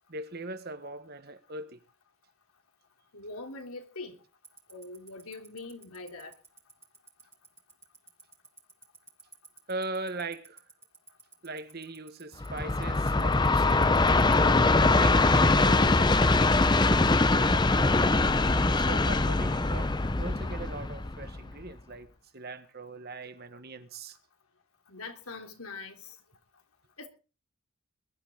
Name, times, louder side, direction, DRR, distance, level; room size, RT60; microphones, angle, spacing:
voice 1, 0.1-1.8 9.7-10.6 11.4-14.1 14.8-18.2 18.7-22.1 22.3-24.2, right 2 dB, 45° right, 1.5 m, -40 dB
voice 2, 3.1-4.2 4.7-6.3 24.9-26.2 27.0-27.1, left 3 dB, 85° left, 3.2 m, -42 dB
Tick-tock, 4.4-14.3, right 5 dB, 10° right, 2.2 m, -50 dB
Train, 12.4-21.6, left 3 dB, 20° left, 0.6 m, -23 dB
21.5 x 11.5 x 3.8 m
head